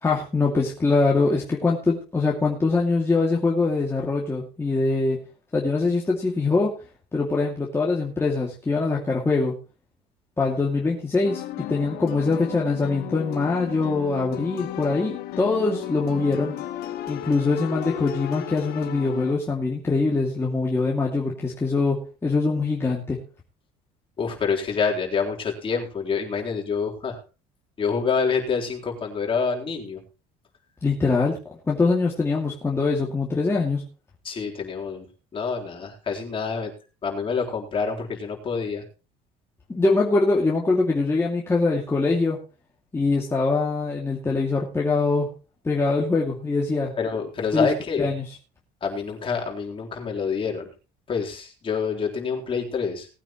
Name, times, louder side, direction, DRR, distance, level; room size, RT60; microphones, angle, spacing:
voice 1, 0.0-5.2 5.5-6.7 7.1-9.5 10.4-11.4 11.7-16.6 17.1-23.2 30.8-31.4 31.7-33.8 39.7-42.4 42.9-45.3 45.6-46.9 47.5-47.7 48.0-48.2, left 3 dB, 15° left, -3 dB, 2.4 m, -23 dB
sound 1, 11.2-19.3, left 13 dB, 65° left, 1.7 m, -34 dB
voice 2, 24.2-27.2 27.8-30.0 34.2-35.1 35.3-36.7 37.0-38.8 47.0-48.1 48.8-50.7 51.1-53.1, left 5 dB, 30° left, 0 dB, 3.9 m, -27 dB
19.5 x 9.1 x 3.1 m, 0.33 s
cardioid pair, 115°, 17 cm